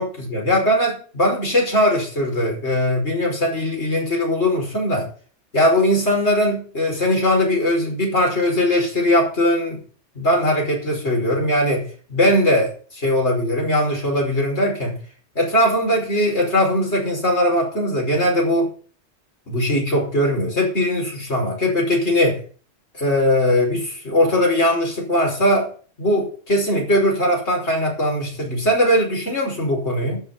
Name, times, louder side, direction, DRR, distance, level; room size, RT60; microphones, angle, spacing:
voice 1, 0.0-5.1 5.5-9.8 10.2-15.0 15.4-18.7 19.5-22.4 22.9-25.7 26.0-30.2, left 1 dB, 75° left, 0 dB, 5.7 m, -20 dB
12.0 x 6.9 x 9.2 m, 0.42 s
omnidirectional pair, 1.2 m